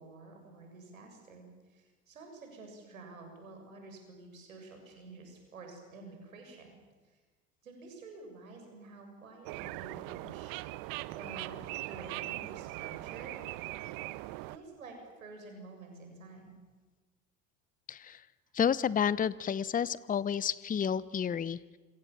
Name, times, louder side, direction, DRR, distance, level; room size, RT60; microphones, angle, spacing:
voice 1, 0.0-6.7 7.0-7.2 7.6-13.9 14.5-16.6, right 3 dB, 85° right, 3 dB, 7.4 m, -50 dB
sound 1, 9.5-14.6, right 19 dB, 55° right, 1.1 m, -40 dB
voice 2, 17.9-18.2 18.5-21.8, left 8 dB, 20° left, 19 dB, 0.8 m, -30 dB
29.0 x 26.0 x 7.2 m, 1.3 s
hypercardioid pair, 75°, 40 cm